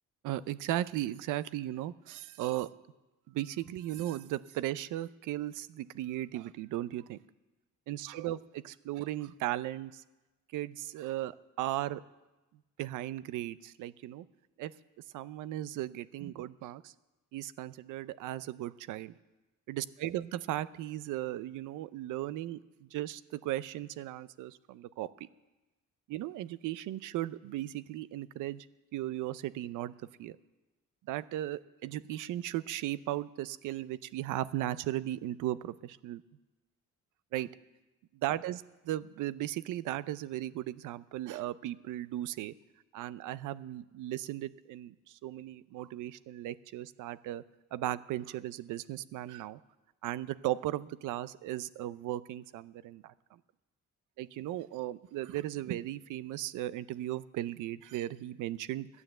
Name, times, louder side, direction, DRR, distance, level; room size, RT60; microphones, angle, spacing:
voice 1, 0.2-2.7 3.3-7.2 7.9-10.0 10.5-12.0 12.8-14.3 14.6-14.7 15.1-16.9 17.3-19.1 19.7-25.3 26.1-28.7 28.9-29.9 30.2-30.4 31.1-36.2 37.3-37.5 38.1-42.5 42.9-47.4 47.7-49.6 50.0-53.4 54.2-58.9, right 14 dB, 85° right, 17 dB, 0.6 m, -36 dB
13.5 x 9.7 x 7.8 m, 1.1 s
cardioid pair, 90°, 30 cm